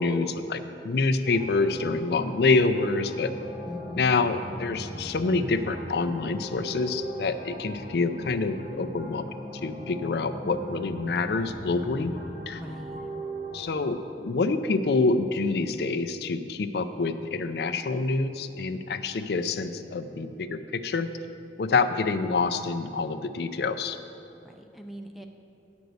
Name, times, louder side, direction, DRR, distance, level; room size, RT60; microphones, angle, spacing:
voice 1, 0.0-3.3 4.0-9.3 9.6-12.1 12.5-12.6 13.5-21.1 21.6-24.0, left 3 dB, 60° left, 9 dB, 0.4 m, -26 dB
sound 1, 1.2-13.8, equal, 50° right, 2.0 m, -40 dB
voice 2, 3.7-4.1 12.5-13.0 24.4-25.3, equal, ahead, 4 dB, 0.4 m, -41 dB
9.1 x 5.2 x 8.0 m, 2.7 s
head